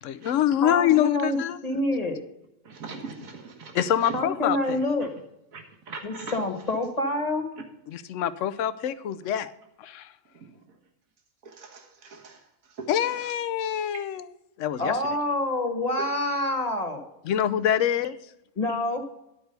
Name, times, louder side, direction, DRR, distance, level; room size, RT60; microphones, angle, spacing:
voice 1, 0.0-1.6 3.7-4.8 7.9-9.5 9.8-10.1 12.9-14.3 14.6-15.0 17.2-18.2, left 10 dB, 70° left, 14 dB, 0.9 m, -25 dB
voice 2, 0.6-1.4 1.6-2.2 4.1-5.1 6.0-7.5 14.8-17.1 18.5-19.0, left 1 dB, 30° left, 5 dB, 1.4 m, -27 dB
voice 3, 2.6-4.2 5.5-6.4 10.3-10.6 11.4-12.4 12.7-13.3, right 4 dB, 75° right, 3 dB, 1.8 m, -41 dB
11.5 x 4.6 x 6.6 m, 0.84 s
omnidirectional pair, 1.4 m